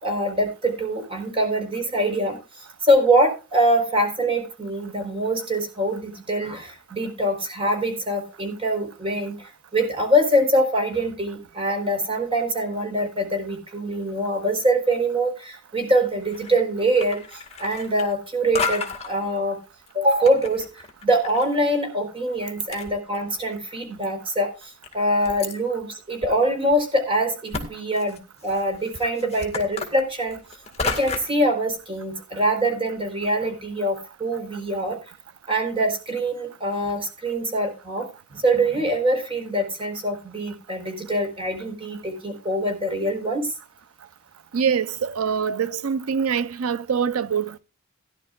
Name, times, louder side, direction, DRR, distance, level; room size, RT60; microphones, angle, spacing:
voice 1, 0.0-19.6 19.9-30.4 30.8-35.0 35.5-43.5, right 1 dB, 25° right, 4.2 m, -24 dB
sound 1, 16.2-16.6 16.9-18.3 18.5-19.1 19.9-21.5 21.7-21.8 22.4-22.5 22.7-23.5 24.1-24.2 24.8-25.5 26.2-26.3 26.7-26.8 27.5-27.7 27.9-31.4, left 4 dB, 30° left, 2.0 m, -32 dB
voice 2, 44.5-47.6, right 7 dB, 90° right, 0.6 m, -24 dB
17.5 x 11.0 x 2.4 m
head